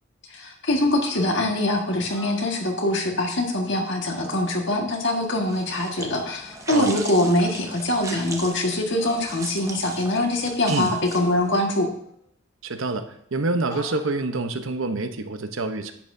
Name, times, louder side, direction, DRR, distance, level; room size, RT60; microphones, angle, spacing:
voice 1, 0.3-11.9, left 1 dB, 60° left, 1 dB, 1.7 m, -23 dB
sound 1, 1.0-1.6 2.0-3.1 4.1-5.0 6.2-6.7 7.2-7.7 9.0-9.9 11.2-12.1 13.7-14.5, left 1 dB, 20° left, 2.9 m, -45 dB
sound 2, 5.4-11.6, right 3 dB, 15° right, 0.9 m, -38 dB
voice 2, 12.6-15.9, right 3 dB, 75° right, 8 dB, 0.8 m, -27 dB
10.5 x 8.5 x 2.7 m, 0.70 s
head